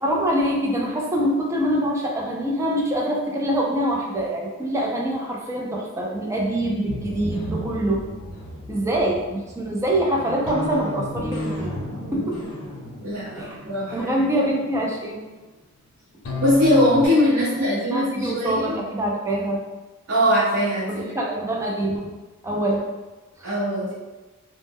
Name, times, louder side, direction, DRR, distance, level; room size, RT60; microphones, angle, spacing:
voice 1, 0.0-8.0 8.7-12.5 13.4-13.6 13.9-15.2 17.4-19.6 20.9-22.1 22.4-22.9 23.4-23.5, right 1 dB, 15° right, -2 dB, 0.3 m, -25 dB
sound 1, 6.9-15.1 16.2-17.1, left 1 dB, 90° left, 0.6 m, -33 dB
voice 2, 13.0-14.1 16.4-18.7 20.1-21.1 23.4-23.9, equal, 60° right, -9 dB, 0.7 m, -21 dB
2.1 x 2.1 x 3.4 m, 1.2 s
head